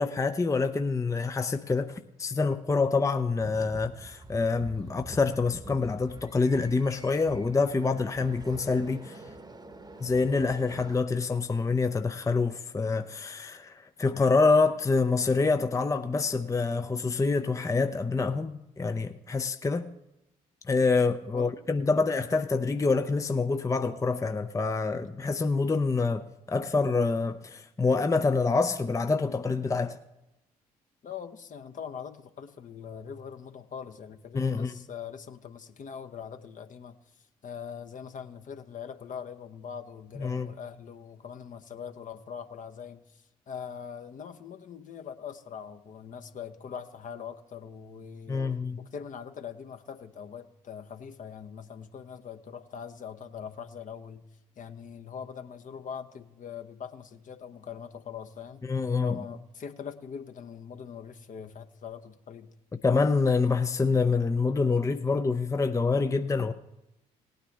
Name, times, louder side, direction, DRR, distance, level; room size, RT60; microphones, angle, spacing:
voice 1, 0.0-9.2 10.0-19.9 20.7-30.0 34.3-34.7 40.2-40.5 48.3-48.8 58.6-59.2 62.8-66.5, left 4 dB, 15° left, 0.6 m, -26 dB
Bungee girl Bloukrans Bridge, 3.4-10.9, right 2 dB, 20° right, 1.0 m, -46 dB
voice 2, 31.0-48.5 48.8-54.2 54.6-58.6 59.0-62.5, left 7 dB, 45° left, 1.0 m, -42 dB
18.5 x 9.2 x 3.4 m
hypercardioid pair, 45°, 18 cm